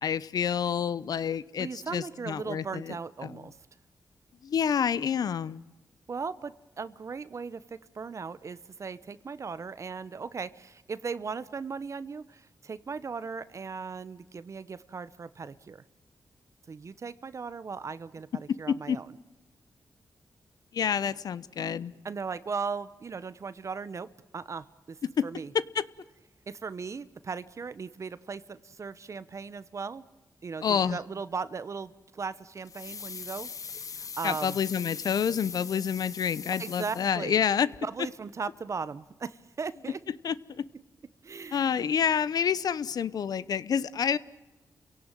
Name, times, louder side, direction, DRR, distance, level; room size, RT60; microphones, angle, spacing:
voice 1, 0.0-2.9 3.2-3.4 4.4-5.6 18.7-19.0 20.7-21.9 25.2-25.3 25.7-25.8 30.6-31.0 34.2-37.7 40.2-40.6 41.5-44.2, left 7 dB, 75° left, 18 dB, 0.8 m, -28 dB
voice 2, 1.6-3.6 6.1-15.8 16.7-19.1 22.0-25.0 25.2-25.5 26.5-30.0 30.4-33.5 33.8-34.6 36.6-37.4 37.8-40.0 41.2-41.8, right 5 dB, 50° right, 15 dB, 0.9 m, -38 dB
sound 1, 32.6-37.5 37.7-37.8, left 6 dB, 60° left, 1.3 m, -41 dB
28.5 x 17.5 x 9.1 m, 1.1 s
cardioid pair, 80°, 7 cm